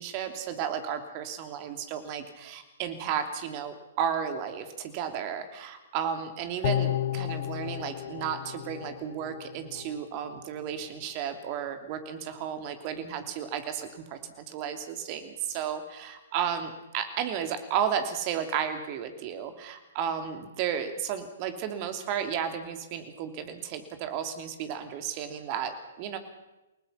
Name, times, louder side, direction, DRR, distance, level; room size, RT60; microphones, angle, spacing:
voice 1, 0.0-26.2, right 8 dB, 35° right, 7 dB, 3.0 m, -33 dB
sound 1, 6.6-10.0 10.3-10.4, left 12 dB, 45° left, 0.9 m, -32 dB
29.5 x 19.0 x 5.8 m, 0.99 s
figure-of-eight pair, 120°, 0 cm